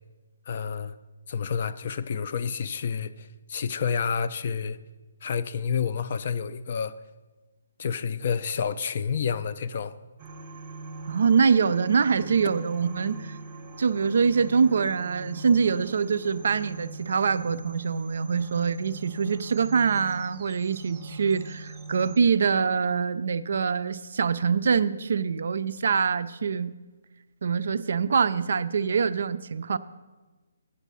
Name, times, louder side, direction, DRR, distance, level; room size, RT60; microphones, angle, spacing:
voice 1, 0.5-0.9 1.3-4.8 5.2-7.0 7.8-9.9, left 6 dB, 35° left, 0.4 m, -29 dB
sound 1, 10.2-22.2, right 3 dB, 15° right, 0.7 m, -42 dB
voice 2, 11.1-13.4 13.8-26.7 27.4-29.8, right 6 dB, 55° right, 0.4 m, -24 dB
8.0 x 7.2 x 6.9 m
hypercardioid pair, 175°, 0 cm